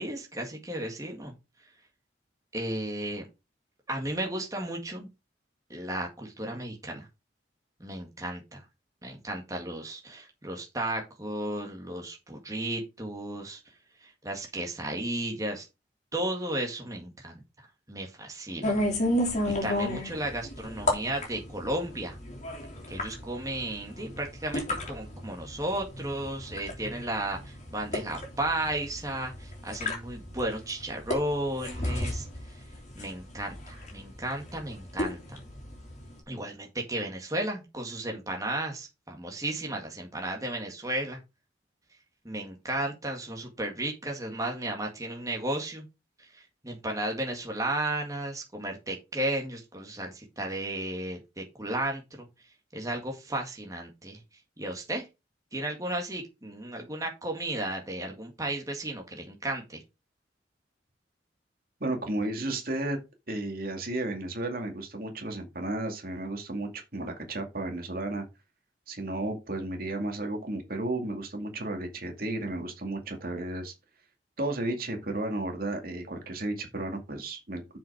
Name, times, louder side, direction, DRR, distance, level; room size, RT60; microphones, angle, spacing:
voice 1, 0.0-1.3 1.6-1.7 2.5-3.2 3.9-5.1 5.7-7.1 7.8-8.6 9.0-13.6 14.0-15.7 16.1-18.8 19.6-22.2 22.9-32.6 33.0-35.4 36.3-41.2 42.2-45.9 46.2-52.3 52.7-54.2 54.6-55.1 55.5-59.8, right 1 dB, 20° right, 1.9 m, -34 dB
sound 1, 18.6-36.2, left 1 dB, 40° left, 3.3 m, -33 dB
voice 2, 61.8-63.0 63.3-68.2 68.9-73.7 74.4-77.8, right 2 dB, 55° right, 2.3 m, -33 dB
7.4 x 5.9 x 5.0 m
head